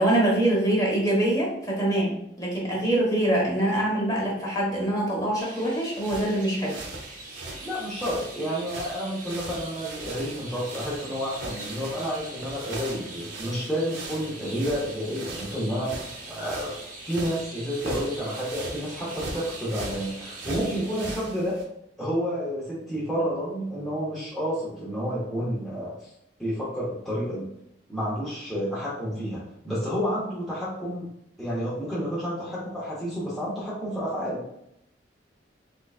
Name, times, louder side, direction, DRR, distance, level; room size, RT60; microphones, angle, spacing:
voice 1, 0.0-6.8, right 1 dB, 20° left, -3 dB, 1.2 m, -24 dB
Chirp tweet, 5.4-21.1, right 2 dB, 50° right, 0.8 m, -43 dB
sound 1, 5.9-21.6, right 2 dB, 85° right, 0.8 m, -40 dB
voice 2, 7.6-16.7 17.0-21.6 22.0-26.1 26.4-27.5 27.9-31.1 31.4-34.4, equal, ahead, -9 dB, 0.8 m, -30 dB
3.9 x 3.3 x 2.4 m, 0.78 s
head